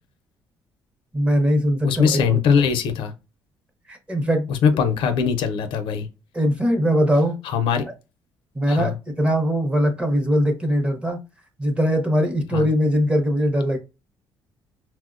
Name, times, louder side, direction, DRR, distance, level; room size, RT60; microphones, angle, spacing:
voice 1, 1.1-2.4 3.9-4.5 6.3-7.4 8.5-8.9 9.2-11.2 11.6-13.8, equal, 10° right, 0.7 m, -21 dB
voice 2, 1.8-3.1 4.5-6.1 7.4-7.8 8.7-9.0 12.5-12.7, left 6 dB, 80° left, 0.5 m, -21 dB
4.4 x 2.1 x 2.4 m
cardioid pair, 140°, 9 cm